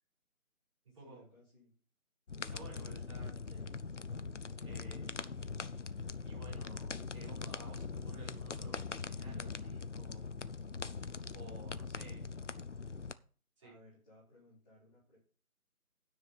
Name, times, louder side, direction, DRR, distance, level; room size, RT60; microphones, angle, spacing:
voice 1, 1.0-1.7 12.0-12.3 13.6-15.2, left 2 dB, 5° left, -10 dB, 2.0 m, -62 dB
sound 1, 2.3-13.1, left 4 dB, 55° left, 0.6 m, -42 dB
voice 2, 2.5-3.8 4.6-5.4 6.2-10.3 11.3-12.2 13.6-13.7, right 3 dB, 20° right, -6 dB, 5.2 m, -54 dB
9.6 x 4.8 x 7.8 m, 0.41 s
figure-of-eight pair, 160°, 44 cm